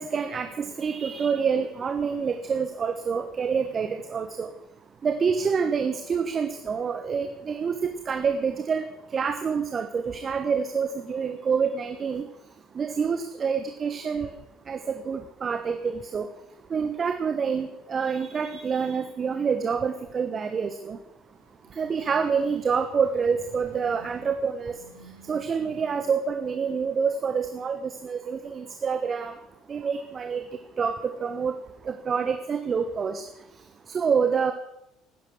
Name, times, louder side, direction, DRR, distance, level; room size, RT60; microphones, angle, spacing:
voice 1, 0.0-4.5 5.0-8.8 9.1-12.2 12.7-14.3 14.7-16.3 16.7-21.0 21.8-24.7 25.3-29.4 29.7-30.4 30.8-30.9 31.2-31.5 31.9-33.2 33.9-34.5, right 6 dB, 35° right, 7 dB, 1.3 m, -27 dB
sound 1, 21.2-26.5, right 2 dB, 85° right, 2.6 m, -52 dB
18.0 x 10.5 x 6.5 m, 0.84 s
figure-of-eight pair, 55°, 0 cm